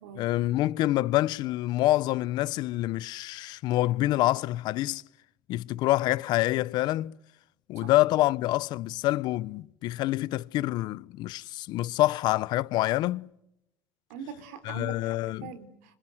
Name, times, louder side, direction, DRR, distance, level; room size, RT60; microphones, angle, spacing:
voice 1, 0.2-5.0 5.5-7.1 7.7-13.3 14.6-15.5, left 16 dB, 60° left, 1.0 m, -26 dB
voice 2, 14.1-15.0 15.3-16.0, right 7 dB, 85° right, 3.9 m, -42 dB
26.5 x 26.0 x 8.0 m
supercardioid pair, 100°, 8 cm